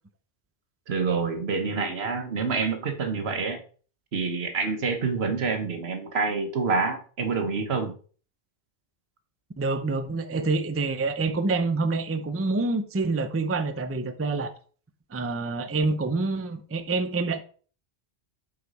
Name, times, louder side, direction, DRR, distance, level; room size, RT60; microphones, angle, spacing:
voice 1, 0.9-3.6 4.1-7.9, right 4 dB, 75° right, 1.3 m, -27 dB
voice 2, 9.6-14.5 15.1-17.4, right 3 dB, 20° right, 0.4 m, -27 dB
8.0 x 5.0 x 4.1 m
omnidirectional pair, 1.1 m